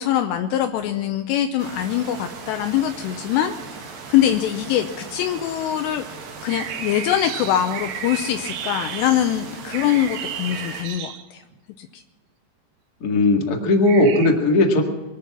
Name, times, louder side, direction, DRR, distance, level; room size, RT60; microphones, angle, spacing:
voice 1, 0.0-3.5 4.1-6.0 6.4-11.4 11.8-12.0, left 11 dB, 80° left, 7 dB, 2.7 m, -23 dB
sound 1, 1.6-10.8, right 4 dB, 50° right, 2.4 m, -38 dB
sound 2, 6.5-11.5 13.8-14.3, right 8 dB, 85° right, 1.8 m, -33 dB
voice 2, 13.0-14.8, left 2 dB, 50° left, 2 dB, 1.1 m, -17 dB
23.0 x 10.0 x 6.0 m, 1.1 s
omnidirectional pair, 5.3 m